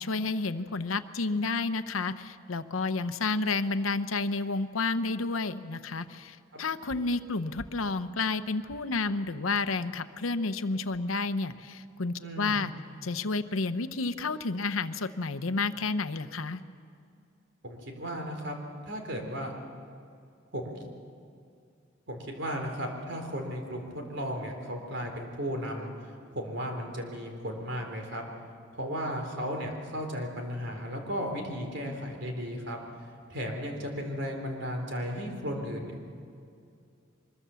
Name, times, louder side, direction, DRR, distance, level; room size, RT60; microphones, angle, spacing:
voice 1, 0.0-12.7 13.0-16.6, left 3 dB, 85° left, 10 dB, 0.9 m, -30 dB
voice 2, 12.2-12.6 17.6-18.6 18.9-19.5 20.5-20.8 22.1-25.9 26.3-28.2 28.7-32.8 33.3-36.0, equal, 60° right, 2 dB, 3.8 m, -35 dB
24.5 x 22.0 x 7.0 m, 2.4 s
head